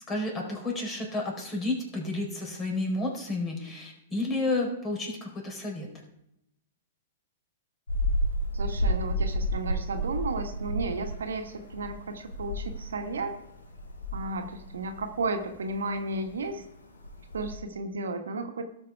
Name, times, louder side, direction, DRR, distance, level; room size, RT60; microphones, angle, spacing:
voice 1, 0.1-5.9, left 2 dB, 20° left, 0 dB, 4.4 m, -31 dB
sound 1, 7.9-17.6, equal, 85° left, 3.4 m, -32 dB
voice 2, 8.5-13.3 14.1-16.6 17.3-18.7, right 3 dB, 75° right, 5 dB, 1.5 m, -33 dB
18.0 x 6.1 x 4.7 m, 0.81 s
figure-of-eight pair, 110°, 0 cm